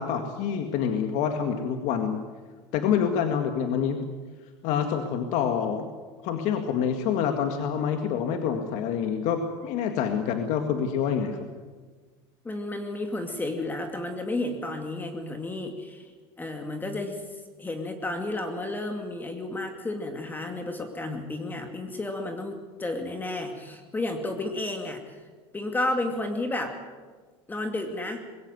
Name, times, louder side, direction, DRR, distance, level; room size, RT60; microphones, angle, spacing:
voice 1, 0.0-2.2 2.7-4.0 4.6-5.9 6.2-11.5, left 7 dB, 60° left, 6 dB, 2.0 m, -27 dB
voice 2, 12.4-16.1 16.4-17.2 17.6-25.2 25.5-26.8 27.5-28.2, left 2 dB, 15° left, 5 dB, 2.4 m, -32 dB
21.5 x 16.5 x 9.3 m, 1.4 s
supercardioid pair, 125°, 14 cm